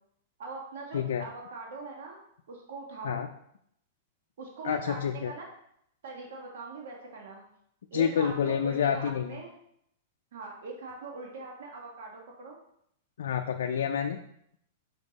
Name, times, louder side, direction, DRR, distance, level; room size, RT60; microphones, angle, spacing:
voice 1, 0.4-2.2 2.5-3.2 4.4-5.5 6.0-7.4 7.9-9.6 10.3-12.6, right 3 dB, 70° right, 0 dB, 1.5 m, -41 dB
voice 2, 0.9-1.3 3.0-3.3 4.6-5.3 7.9-9.4 13.2-14.2, left 8 dB, 85° left, 4 dB, 0.4 m, -28 dB
5.8 x 5.4 x 4.0 m, 0.73 s
supercardioid pair, 160°, 0 cm